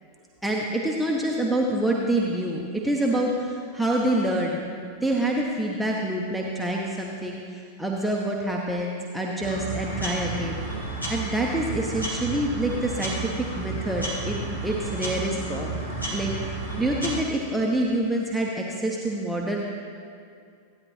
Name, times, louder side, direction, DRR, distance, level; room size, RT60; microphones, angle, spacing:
voice 1, 0.4-10.7 11.1-19.6, right 1 dB, 5° right, -3 dB, 1.0 m, -27 dB
sound 1, 9.4-17.2, right 2 dB, 85° left, 2.2 m, -32 dB
15.5 x 9.6 x 3.2 m, 2.3 s
figure-of-eight pair, 90°, 0 cm